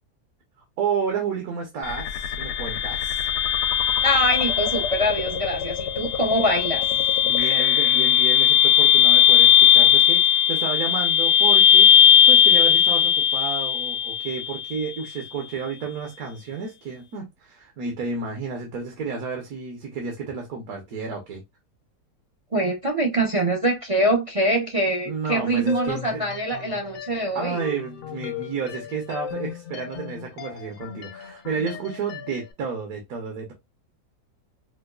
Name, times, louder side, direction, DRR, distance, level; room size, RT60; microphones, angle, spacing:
voice 1, 0.8-3.3 7.2-11.9 12.3-21.4 25.0-26.2 27.3-33.5, right 5 dB, 65° right, 1.4 m, -31 dB
sound 1, 1.8-14.8, left 9 dB, 85° left, 1.2 m, -18 dB
voice 2, 4.0-6.9 22.5-27.6, right 1 dB, 45° right, 0.4 m, -24 dB
sound 2, 25.7-32.5, left 8 dB, 65° left, 0.9 m, -37 dB
4.9 x 2.3 x 2.2 m
omnidirectional pair, 1.7 m